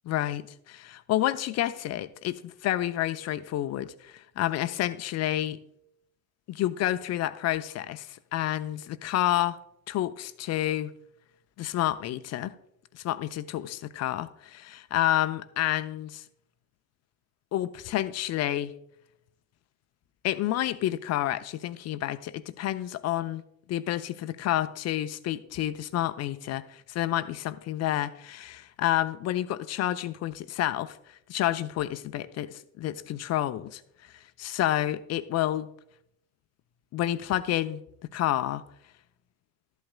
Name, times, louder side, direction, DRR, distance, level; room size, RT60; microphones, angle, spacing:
voice 1, 0.1-5.6 6.5-9.6 9.9-10.9 11.6-12.5 12.9-16.2 17.5-18.7 20.2-23.4 23.7-33.8 34.4-35.7 36.9-37.8 38.1-38.6, left 13 dB, 35° left, 0.6 m, -29 dB
13.0 x 11.5 x 2.3 m
hypercardioid pair, 70°, 47 cm